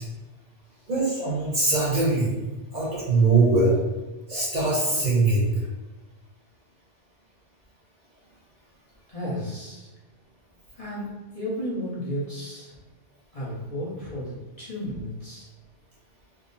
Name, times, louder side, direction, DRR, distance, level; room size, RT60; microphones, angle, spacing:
voice 1, 0.9-2.3 2.7-3.8 4.3-5.5, right 3 dB, 40° right, -6 dB, 1.0 m, -22 dB
voice 2, 9.1-9.9 10.7-12.7 13.3-15.5, equal, 35° left, -7 dB, 0.9 m, -33 dB
3.7 x 2.1 x 4.0 m, 1.1 s
omnidirectional pair, 1.2 m